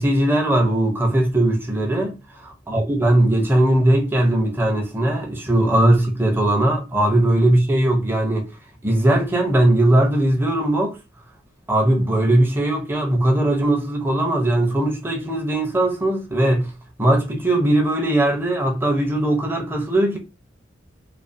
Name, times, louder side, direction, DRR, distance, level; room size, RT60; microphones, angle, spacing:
voice 1, 0.0-2.1 2.4-8.5 8.8-11.0 11.7-16.7 17.0-20.2, right 1 dB, 10° right, 0.5 m, -19 dB
2.4 x 2.3 x 2.5 m
head